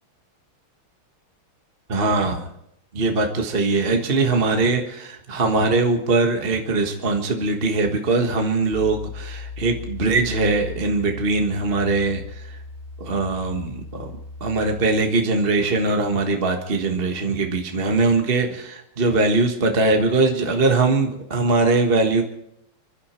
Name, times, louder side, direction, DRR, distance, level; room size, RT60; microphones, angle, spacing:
voice 1, 1.9-2.5 2.9-12.6 13.0-14.1 14.4-22.2, right 3 dB, 30° right, 3 dB, 1.5 m, -21 dB
sound 1, 8.7-14.9, left 4 dB, 55° left, 0.5 m, -37 dB
26.5 x 12.5 x 4.4 m, 0.77 s
omnidirectional pair, 2.4 m